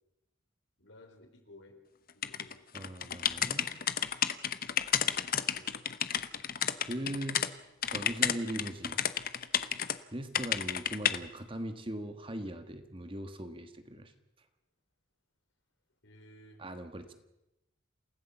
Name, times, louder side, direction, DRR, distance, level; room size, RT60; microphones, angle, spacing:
voice 1, 0.8-1.8 2.1-2.6 4.8-5.8 16.0-16.6, left 1 dB, 70° left, 4 dB, 4.2 m, -56 dB
sound 1, 2.2-7.5 7.8-10.0 10.3-11.2, left 9 dB, 45° left, 0.9 m, -31 dB
voice 2, 2.7-3.8 6.9-7.4 7.9-9.0 10.1-14.1 16.6-17.1, right 1 dB, 25° right, 8 dB, 1.5 m, -40 dB
28.0 x 16.0 x 7.2 m, 0.92 s
head